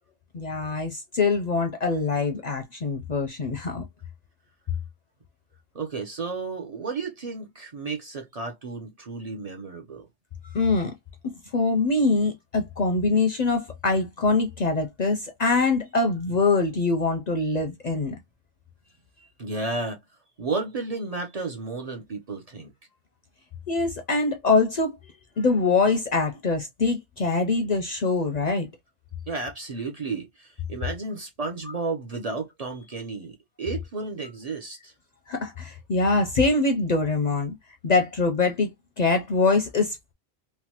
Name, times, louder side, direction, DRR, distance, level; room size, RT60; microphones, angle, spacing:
voice 1, 0.3-3.8 10.5-10.9 11.5-18.2 23.7-25.0 25.4-28.7 35.3-37.5 37.8-38.7 39.0-40.1, left 3 dB, 50° left, 0.5 m, -24 dB
voice 2, 5.7-10.1 19.2-20.0 20.4-22.7 29.3-34.9, right 3 dB, 45° right, 0.6 m, -33 dB
3.1 x 2.2 x 2.8 m
omnidirectional pair, 1.1 m